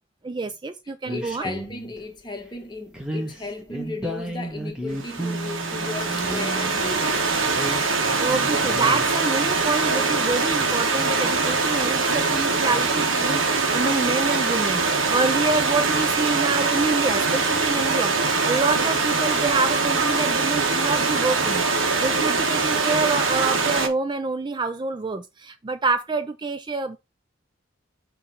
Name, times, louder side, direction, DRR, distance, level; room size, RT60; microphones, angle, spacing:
voice 1, 0.2-1.5 8.2-27.0, right 3 dB, 25° right, 0.3 m, -27 dB
voice 2, 1.1-7.3, left 3 dB, 20° left, 1.3 m, -35 dB
sound 1, 1.1-2.0 2.9-6.9 7.4-9.1, right 1 dB, 5° right, 1.4 m, -33 dB
Stream / Liquid, 5.0-23.9, right 4 dB, 80° right, 1.5 m, -23 dB
6.2 x 3.1 x 5.8 m
head